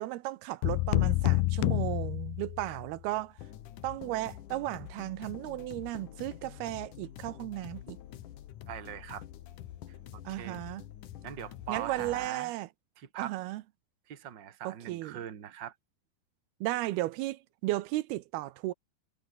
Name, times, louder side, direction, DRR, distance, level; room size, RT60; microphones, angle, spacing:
voice 1, 0.0-3.4 3.8-8.0 10.3-10.8 11.7-12.7 13.2-13.6 14.6-15.2 16.6-18.7, right 17 dB, 85° right, 2.8 m, -35 dB
sound 1, 0.6-2.9, left 21 dB, 85° left, 2.5 m, -28 dB
sound 2, 3.4-12.3, left 12 dB, 60° left, 2.6 m, -47 dB
voice 2, 8.7-9.2 10.3-10.6 11.2-12.6 13.0-13.4 14.1-15.7, right 10 dB, 35° right, 2.1 m, -41 dB
omnidirectional pair, 4.5 m